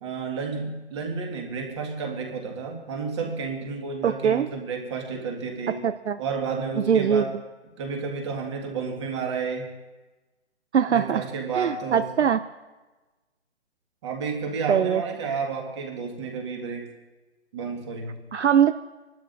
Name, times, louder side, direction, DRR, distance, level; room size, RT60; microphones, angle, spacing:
voice 1, 0.0-5.8 6.2-7.3 7.8-9.7 10.9-12.1 14.0-16.9 17.5-18.2, right 5 dB, 25° right, 2 dB, 1.8 m, -31 dB
voice 2, 4.0-4.5 5.8-6.2 6.9-7.2 10.7-11.2 11.5-12.4 14.7-15.0 18.3-18.7, right 8 dB, 70° right, 11 dB, 0.6 m, -21 dB
27.0 x 12.0 x 2.6 m, 1.2 s
hypercardioid pair, 165°, 36 cm